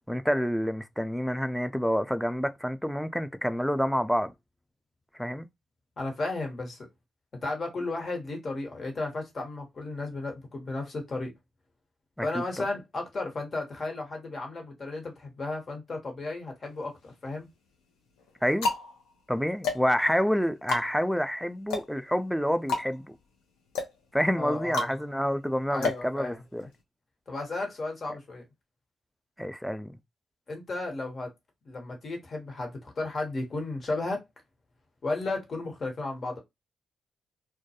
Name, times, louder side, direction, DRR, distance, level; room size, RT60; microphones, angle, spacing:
voice 1, 0.1-4.3 5.2-5.5 12.2-12.6 18.4-18.7 19.3-23.2 24.1-26.7 29.4-29.9, equal, ahead, 0.4 m, -28 dB
voice 2, 6.0-6.8 7.4-11.3 12.2-17.5 24.4-24.9 25.7-26.4 27.3-28.4 30.5-31.3 31.7-34.2 35.0-36.4, left 2 dB, 50° left, 1.1 m, -34 dB
sound 1, 16.7-17.4 18.1-26.8, left 3 dB, 85° left, 0.6 m, -34 dB
2.2 x 2.2 x 2.7 m
hypercardioid pair, 40°, 0 cm